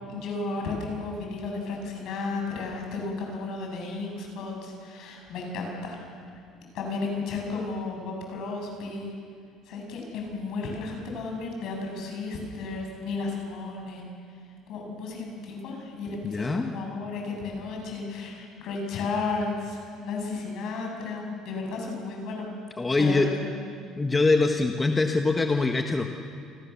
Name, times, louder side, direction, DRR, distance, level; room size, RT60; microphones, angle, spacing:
voice 1, 0.1-6.0 6.7-9.1 9.7-14.0 14.7-22.5 23.0-23.5, left 3 dB, 65° left, 1 dB, 7.7 m, -33 dB
voice 2, 16.2-16.7 22.8-23.3 24.0-26.1, left 3 dB, 15° left, 4 dB, 1.4 m, -23 dB
29.5 x 21.0 x 7.2 m, 2.3 s
cardioid pair, 115°, 0 cm